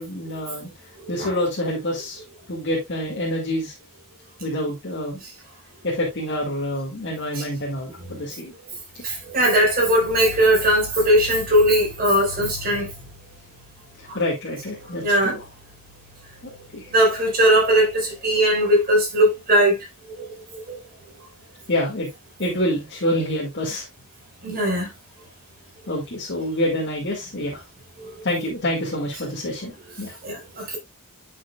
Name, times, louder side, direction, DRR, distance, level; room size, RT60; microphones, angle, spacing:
voice 1, 0.0-2.2 2.5-3.7 4.4-5.2 5.8-8.5 8.9-9.1 14.0-15.5 16.7-16.9 21.7-22.1 22.4-23.9 24.5-24.7 25.9-27.6 28.2-30.2, left 1 dB, 55° left, 2.0 m, -27 dB
voice 2, 9.0-12.9 14.1-14.2 15.0-15.3 16.9-19.8 20.1-20.8 24.4-24.9 28.0-28.1 30.2-30.8, equal, 45° right, 4.5 m, -19 dB
9.8 x 6.1 x 2.3 m
head